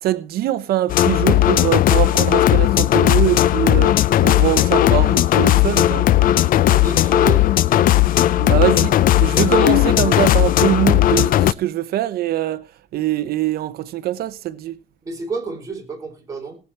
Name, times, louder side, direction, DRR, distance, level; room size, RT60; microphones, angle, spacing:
voice 1, 0.0-3.9 4.2-6.1 8.4-12.6 12.9-14.7, right 13 dB, 65° right, 0.8 m, -23 dB
sound 1, 0.9-11.5, left 13 dB, 55° left, 0.5 m, -16 dB
voice 2, 6.7-7.5 15.0-16.6, right 4 dB, 20° right, 4.8 m, -29 dB
18.5 x 8.3 x 4.5 m
cardioid pair, 130°, 17 cm